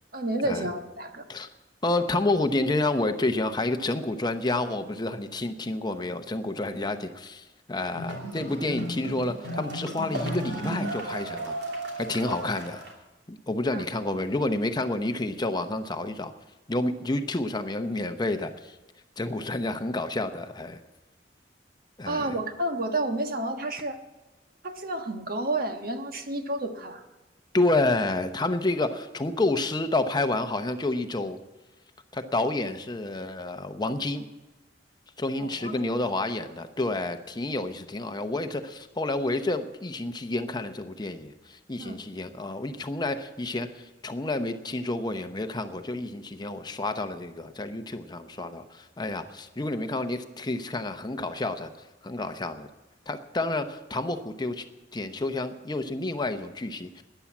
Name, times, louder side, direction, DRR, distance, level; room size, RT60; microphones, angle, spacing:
voice 1, 0.1-1.2 13.7-13.8 22.1-24.0 24.6-27.0 35.4-36.0 41.8-42.0, right 2 dB, 55° right, 6 dB, 1.4 m, -30 dB
voice 2, 1.8-11.5 12.0-12.8 13.3-16.3 16.7-18.8 19.2-20.8 22.0-22.3 27.5-31.4 32.1-34.3 35.2-51.7 52.0-52.7 53.1-54.7 54.9-57.0, left 2 dB, 25° left, 8 dB, 0.8 m, -29 dB
sound 1, 7.9-12.9, right 1 dB, 70° right, 2.8 m, -34 dB
13.0 x 10.0 x 8.4 m, 1.1 s
head